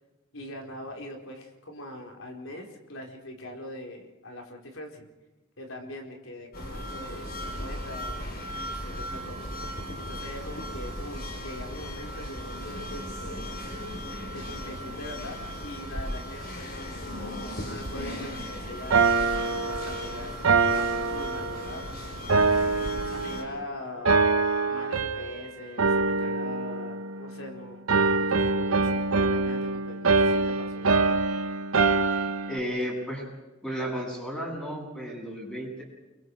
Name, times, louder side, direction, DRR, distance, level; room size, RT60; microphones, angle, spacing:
voice 1, 0.3-5.1 5.6-8.2 8.7-9.5 10.0-13.5 14.3-17.1 17.6-22.3 23.0-24.2 24.7-27.9 28.2-31.0, left 1 dB, 75° left, 1 dB, 4.6 m, -42 dB
sound 1, 6.5-23.4, equal, 50° left, 4.5 m, -37 dB
sound 2, 18.9-21.8 22.3-23.6 24.1-25.4 25.8-27.5 27.9-32.6, right 4 dB, 85° right, 1.1 m, -25 dB
voice 2, 32.5-33.3 33.6-35.8, equal, 5° left, -2 dB, 8.0 m, -33 dB
29.5 x 23.0 x 4.9 m, 1.1 s
head